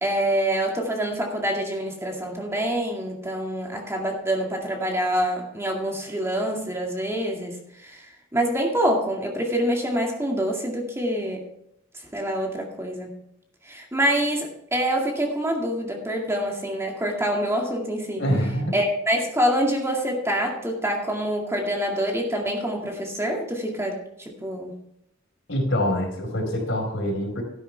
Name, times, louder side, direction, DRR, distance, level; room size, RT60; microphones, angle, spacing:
voice 1, 0.0-8.1 8.3-11.4 12.1-13.1 13.7-18.2 18.7-24.7, equal, 15° right, 0 dB, 2.1 m, -26 dB
voice 2, 18.2-18.7 25.5-27.4, equal, 70° left, 1 dB, 4.6 m, -25 dB
13.0 x 10.0 x 3.4 m, 0.77 s
head